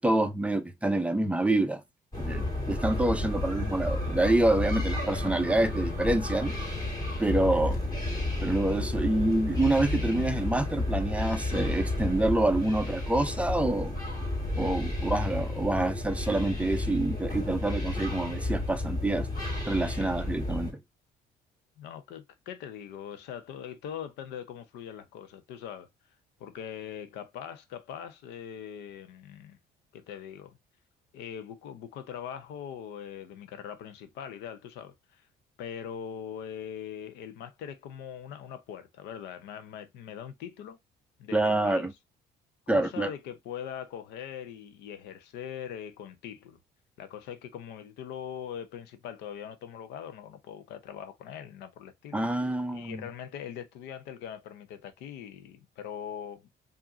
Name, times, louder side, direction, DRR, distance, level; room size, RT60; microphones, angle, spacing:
voice 1, 0.0-1.8 2.2-6.5 7.2-7.8 8.4-14.0 14.6-19.3 19.7-20.8 41.3-41.9 42.7-43.1 52.1-53.0, right 2 dB, 5° right, 0.6 m, -27 dB
sound 1, 2.1-20.7, left 2 dB, 25° left, 2.2 m, -32 dB
voice 2, 21.8-25.9 26.4-29.6 29.9-30.6 31.1-35.2 35.6-40.8 41.2-41.9 42.7-46.6 47.0-52.2 52.7-56.5, left 8 dB, 85° left, 0.8 m, -41 dB
4.8 x 2.7 x 2.6 m
cardioid pair, 110°, 17 cm